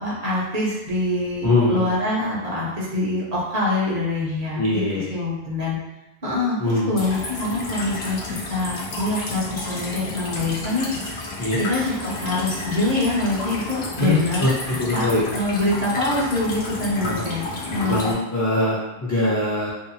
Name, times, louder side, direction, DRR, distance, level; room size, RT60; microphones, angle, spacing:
voice 1, 0.0-5.8 6.2-8.2 8.5-10.9 11.6-18.1, left 2 dB, 45° right, -6 dB, 0.7 m, -25 dB
voice 2, 1.4-1.9 4.6-5.1 6.6-6.9 11.4-11.6 14.0-15.2 17.0-17.2 17.8-19.7, left 1 dB, 30° left, -7 dB, 0.3 m, -22 dB
sound 1, 7.0-18.1, left 2 dB, 80° left, 0.9 m, -31 dB
2.7 x 2.3 x 2.6 m, 0.98 s
omnidirectional pair, 1.0 m